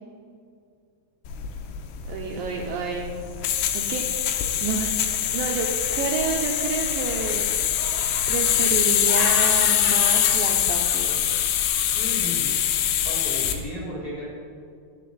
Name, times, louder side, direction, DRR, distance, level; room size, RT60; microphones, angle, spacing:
sound 1, 1.3-13.6, left 10 dB, 85° left, 2.8 m, -23 dB
voice 1, 2.1-3.2 3.7-4.1 4.6-4.9 5.3-7.8 8.3-11.1, right 5 dB, 75° right, 0 dB, 2.1 m, -29 dB
Laughter, 6.7-7.4 7.8-12.1, left 3 dB, 65° left, 2.7 m, -35 dB
voice 2, 11.9-12.5 12.8-14.3, left 1 dB, 25° left, -7 dB, 3.2 m, -35 dB
11.5 x 4.6 x 8.3 m, 2.3 s
omnidirectional pair, 4.7 m